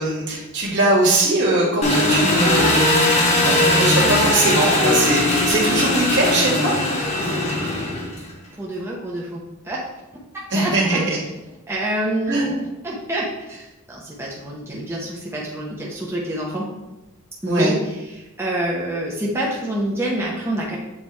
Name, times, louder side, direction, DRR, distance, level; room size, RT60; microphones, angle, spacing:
voice 1, 0.0-6.7 10.5-11.2 12.3-12.6 17.5-17.7, right 2 dB, 60° right, -4 dB, 1.8 m, -21 dB
Engine, 1.8-8.3, left 1 dB, 35° left, 1.0 m, -19 dB
voice 2, 8.5-9.9 10.1-11.2 11.7-12.5 12.8-16.7 17.4-20.8, right 1 dB, 10° right, -4 dB, 0.8 m, -27 dB
7.3 x 4.1 x 3.2 m, 1.0 s
head